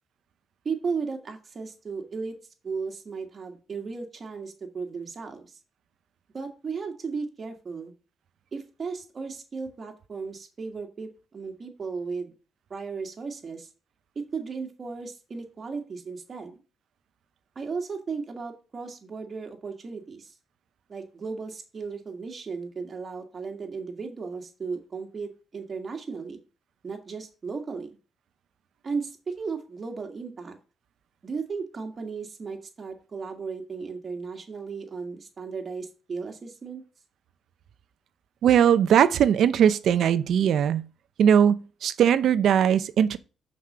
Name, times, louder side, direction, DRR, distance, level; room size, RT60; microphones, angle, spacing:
voice 1, 0.7-2.4 2.6-5.6 6.3-7.9 8.5-12.3 12.7-13.7 14.3-16.6 17.6-20.3 20.9-26.4 26.8-28.0 28.8-30.6 31.2-36.8, right 5 dB, 40° right, 1.8 m, -35 dB
voice 2, 38.4-40.8 41.2-43.2, right 9 dB, 70° right, 0.6 m, -20 dB
5.9 x 4.9 x 6.7 m
cardioid pair, 95°, 0 cm